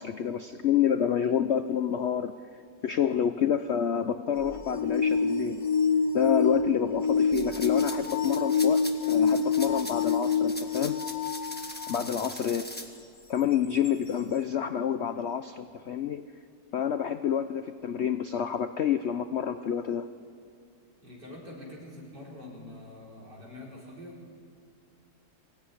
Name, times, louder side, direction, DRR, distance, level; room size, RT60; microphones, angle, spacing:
voice 1, 0.0-2.3 2.8-5.6 6.1-11.0 11.9-12.6 13.3-16.3 16.7-20.1, left 8 dB, 70° left, 10 dB, 0.6 m, -28 dB
sound 1, 4.4-12.0 12.7-12.8 13.8-13.9, left 5 dB, 30° left, 0.8 m, -27 dB
sound 2, 7.3-12.9, left 1 dB, 5° left, 1.4 m, -41 dB
voice 2, 21.0-24.2, left 1 dB, 70° right, -4 dB, 5.3 m, -45 dB
22.0 x 16.5 x 9.8 m, 2.3 s
omnidirectional pair, 1.9 m